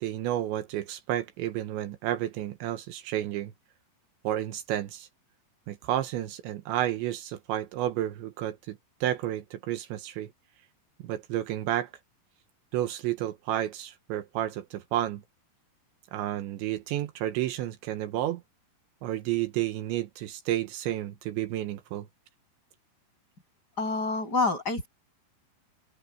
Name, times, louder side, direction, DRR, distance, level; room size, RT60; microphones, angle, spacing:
voice 1, 0.0-3.5 4.2-5.1 5.7-10.3 11.0-11.9 12.7-15.2 16.1-18.4 19.0-22.1, right 12 dB, 80° right, 3.3 m, -31 dB
voice 2, 23.8-24.9, left 3 dB, 20° left, 8.1 m, -27 dB
omnidirectional pair, 5.4 m